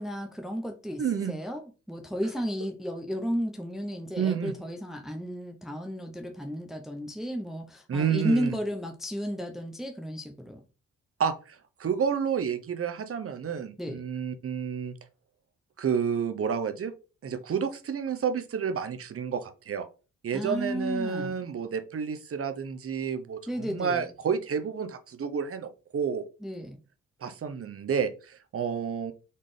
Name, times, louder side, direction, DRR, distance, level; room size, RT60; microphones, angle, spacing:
voice 1, 0.0-1.6 1.9-10.6 13.8-14.0 20.3-21.4 23.5-24.0 26.4-26.8, equal, ahead, 0.7 m, -33 dB
voice 2, 1.0-1.4 4.2-4.5 7.9-8.6 11.2-14.9 15.8-16.9 17.2-19.9 20.2-26.2 27.2-29.1, right 7 dB, 45° right, 0.8 m, -30 dB
4.1 x 3.6 x 3.3 m
cardioid pair, 70°, 31 cm